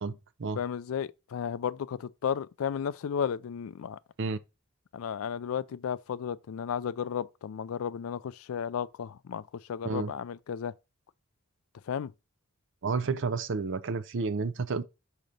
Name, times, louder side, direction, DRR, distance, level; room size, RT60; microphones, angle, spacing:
voice 1, 0.0-0.6 4.2-4.4 9.8-10.1 12.8-14.8, right 4 dB, 60° right, 0.5 m, -31 dB
voice 2, 0.6-4.0 4.9-9.4 9.7-10.7 11.9-12.1, left 7 dB, 75° left, 0.4 m, -33 dB
6.3 x 2.9 x 5.1 m
head